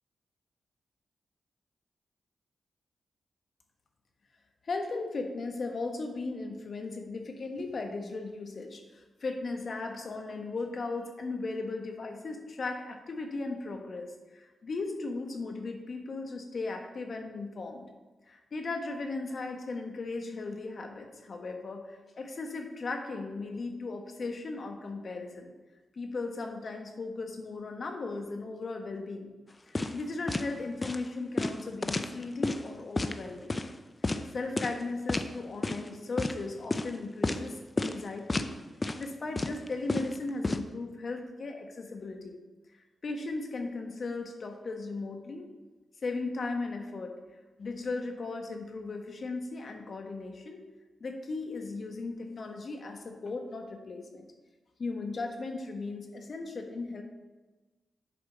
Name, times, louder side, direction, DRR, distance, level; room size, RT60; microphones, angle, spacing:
voice 1, 4.6-14.1 14.3-17.9 18.3-25.5 25.9-29.3 29.7-33.6 34.3-38.5 39.0-42.4 43.0-45.4 46.0-47.1 47.6-50.6 51.0-54.2 54.8-57.0, left 3 dB, 60° left, 4 dB, 1.3 m, -37 dB
sound 1, 29.7-30.0 30.3-30.5 30.8-31.0 31.4-32.6 33.0-33.2 33.5-33.7 34.0-34.2 34.6-34.8 35.1-35.3 35.6-35.9 36.2-36.3 36.7-36.9 37.2-37.5 37.8-37.9 38.3-38.5 38.8-39.0 39.4-40.6, left 2 dB, 35° left, 0.6 m, -30 dB
7.7 x 5.1 x 6.0 m, 1.2 s
supercardioid pair, 45°, 0 cm